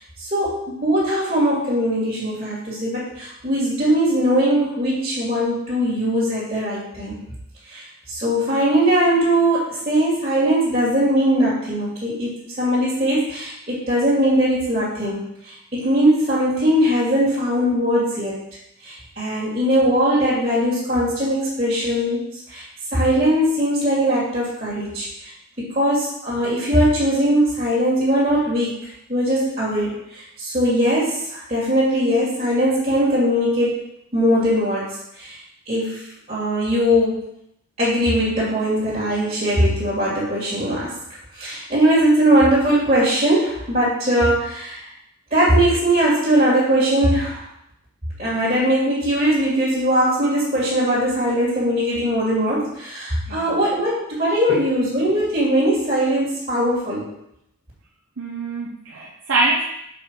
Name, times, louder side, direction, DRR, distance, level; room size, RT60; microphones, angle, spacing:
voice 1, 0.2-7.2 7.7-18.4 18.8-22.2 22.5-22.6 22.9-25.3 25.6-28.7 29.1-33.8 34.1-35.4 35.7-36.0 36.3-37.2 37.8-40.9 41.3-44.8 45.3-47.4 48.2-57.1, equal, 30° right, -10 dB, 2.4 m, -20 dB
voice 2, 58.2-59.6, right 2 dB, 60° right, -4 dB, 0.8 m, -24 dB
6.1 x 5.2 x 4.6 m, 0.78 s
head